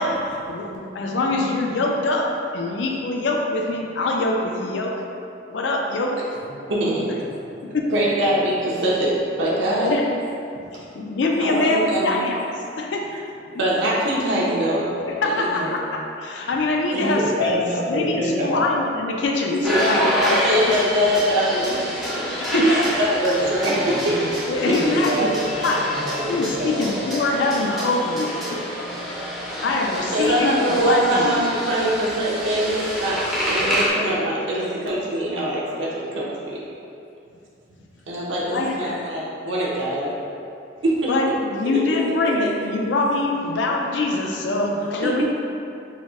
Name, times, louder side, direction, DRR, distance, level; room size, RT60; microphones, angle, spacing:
voice 1, 0.0-5.0 5.5-6.2 7.6-7.9 9.8-10.1 10.7-13.1 13.5-13.6 15.1-17.6 17.9-20.7 22.4-22.7 24.5-25.8 26.3-29.3 29.6-31.4 38.5-39.2 41.1-45.2, left 2 dB, 75° left, 1 dB, 0.4 m, -24 dB
voice 2, 6.7-7.0 7.9-9.1 9.4-10.0 11.4-12.2 13.6-14.9 15.2-15.8 19.6-20.1 20.4-21.8 22.3-23.7 24.6-24.7 25.1-25.2 30.1-32.7 33.0-33.2 33.5-36.6 38.1-40.1 40.8-41.1 45.0-45.1, right 1 dB, 85° right, -6 dB, 0.7 m, -23 dB
voice 3, 16.9-18.7 23.4-24.3 24.6-27.1, equal, 45° right, -5 dB, 0.7 m, -28 dB
sound 1, 19.6-33.9, equal, ahead, 0.8 m, -27 dB
4.1 x 2.0 x 3.6 m, 2.6 s
head